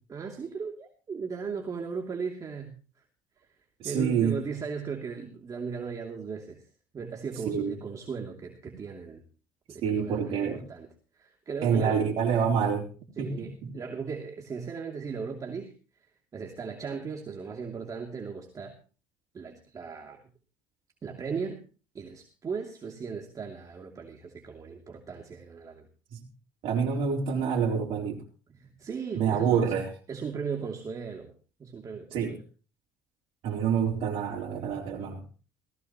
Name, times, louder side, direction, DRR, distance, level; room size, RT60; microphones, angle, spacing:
voice 1, 0.1-2.7 3.5-3.6 3.8-6.6 6.9-9.2 9.7-12.0 13.2-15.7 16.0-18.7 19.3-20.2 21.0-21.6 21.9-25.9 28.5-29.7 30.1-31.3 31.6-32.4, right 5 dB, 35° right, 1 dB, 2.8 m, -37 dB
voice 2, 3.8-4.4 7.5-7.7 9.8-10.6 11.6-12.8 13.2-13.5 26.1-26.2 26.6-28.2 29.1-29.8 32.1-32.4 33.4-35.2, right 7 dB, 65° right, -3 dB, 3.9 m, -27 dB
18.0 x 15.5 x 3.0 m, 0.37 s
supercardioid pair, 75°, 10 cm